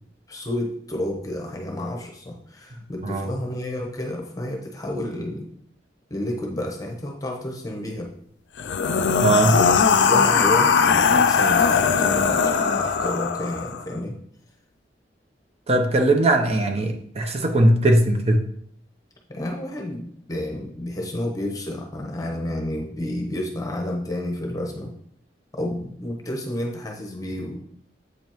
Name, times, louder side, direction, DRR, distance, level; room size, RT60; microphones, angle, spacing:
voice 1, 0.3-5.5 6.1-8.1 9.4-14.1 19.3-25.0 25.5-27.6, left 1 dB, 20° left, 0 dB, 1.0 m, -30 dB
sound 1, 8.6-13.8, left 6 dB, 75° left, 0.4 m, -19 dB
voice 2, 9.2-9.6 15.7-18.5, right 1 dB, 35° right, 5 dB, 0.8 m, -19 dB
7.9 x 5.3 x 3.0 m, 0.66 s
head